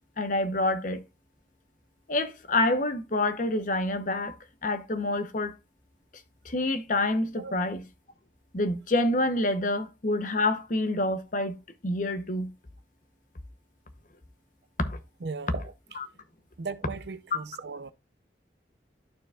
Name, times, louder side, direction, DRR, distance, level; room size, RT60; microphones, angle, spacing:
voice 1, 0.2-1.0 2.1-4.3 4.6-5.5 6.4-7.8 8.5-11.6 11.8-12.5 14.8-15.0, left 2 dB, 50° left, 0.9 m, -27 dB
voice 2, 15.2-15.7 16.6-17.9, right 4 dB, 70° right, 0.6 m, -37 dB
12.5 x 4.6 x 2.3 m
head